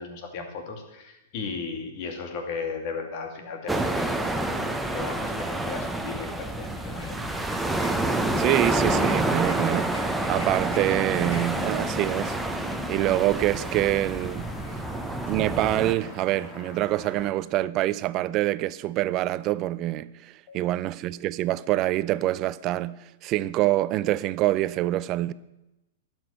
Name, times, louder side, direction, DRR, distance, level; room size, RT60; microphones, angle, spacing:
voice 1, 0.0-7.3 14.6-14.7 20.5-20.8, left 4 dB, 50° left, 2.4 m, -36 dB
sound 1, 3.7-15.9, right 2 dB, 5° right, 1.0 m, -28 dB
sound 2, 6.6-16.3, left 2 dB, 80° left, 2.8 m, -48 dB
voice 2, 8.4-12.4 12.9-14.5 15.2-25.3, right 15 dB, 40° right, 0.5 m, -26 dB
sound 3, 11.2-17.3, left 4 dB, 30° left, 1.9 m, -42 dB
12.0 x 6.3 x 8.9 m
hypercardioid pair, 105°, 0 cm